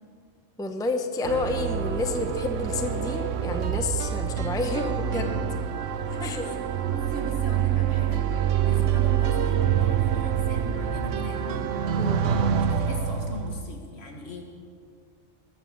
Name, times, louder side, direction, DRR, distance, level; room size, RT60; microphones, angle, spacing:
voice 1, 0.6-5.3 6.1-6.5 12.0-12.2, left 2 dB, 5° left, 6 dB, 0.7 m, -30 dB
sound 1, 1.3-13.6, right 8 dB, 85° right, 1.1 m, -26 dB
voice 2, 6.2-6.6 6.9-8.2 8.6-11.6 12.6-14.5, left 1 dB, 60° left, 1 dB, 2.1 m, -39 dB
20.0 x 8.3 x 7.3 m, 2.2 s
omnidirectional pair, 1.2 m